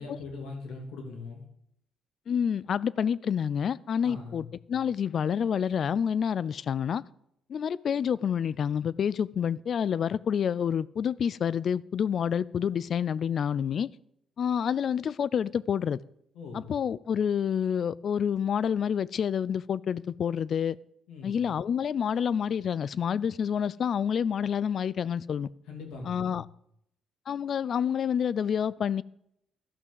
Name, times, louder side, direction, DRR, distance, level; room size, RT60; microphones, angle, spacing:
voice 1, 0.0-1.4 4.0-4.4 16.3-16.7 21.1-21.5 25.7-26.4, left 3 dB, 85° left, 2.9 m, -41 dB
voice 2, 2.3-7.0 7.5-13.9 14.4-16.0 16.5-20.8 21.2-25.5 26.1-26.4 27.3-29.0, left 8 dB, 55° left, 0.4 m, -28 dB
12.0 x 6.1 x 7.0 m
cardioid pair, 90°, 0 cm